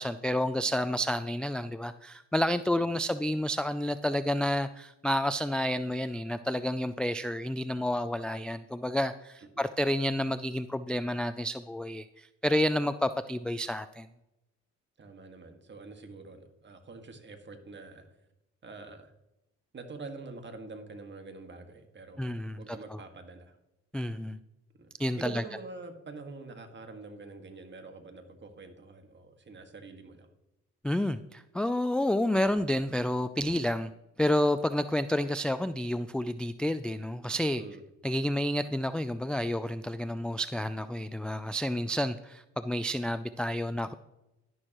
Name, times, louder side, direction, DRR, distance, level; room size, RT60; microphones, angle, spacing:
voice 1, 0.0-14.1 22.2-22.6 23.9-24.4 25.0-25.4 30.8-33.9 34.2-37.6 38.0-43.9, left 1 dB, 5° left, 11 dB, 0.3 m, -30 dB
voice 2, 15.0-18.0 18.6-19.1 19.7-23.6 24.8-24.9 25.2-30.3 37.5-37.8, right 3 dB, 40° right, 6 dB, 1.8 m, -45 dB
11.5 x 11.0 x 3.0 m, 0.91 s
cardioid pair, 90°, 30 cm